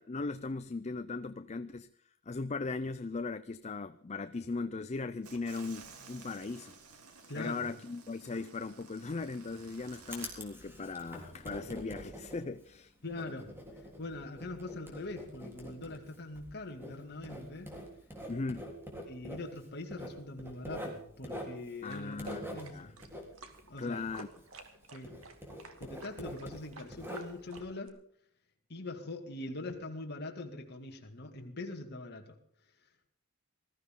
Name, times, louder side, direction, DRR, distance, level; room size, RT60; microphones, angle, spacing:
voice 1, 0.0-1.9 2.3-6.7 7.4-12.9 18.3-18.7 21.8-22.9 23.8-24.3, left 3 dB, 30° left, 0.5 m, -38 dB
sound 1, 5.2-10.3, right 5 dB, 80° right, 2.8 m, -54 dB
voice 2, 7.3-7.7 13.0-13.5 14.0-17.8 19.1-23.0 23.7-24.1 24.9-25.2 25.8-28.0 28.7-32.4, left 2 dB, 45° left, 2.3 m, -43 dB
Writing, 9.4-24.8 25.0-27.6, equal, 10° right, 3.6 m, -46 dB
sound 2, 21.9-27.9, right 3 dB, 65° right, 2.3 m, -51 dB
20.5 x 14.5 x 3.8 m
head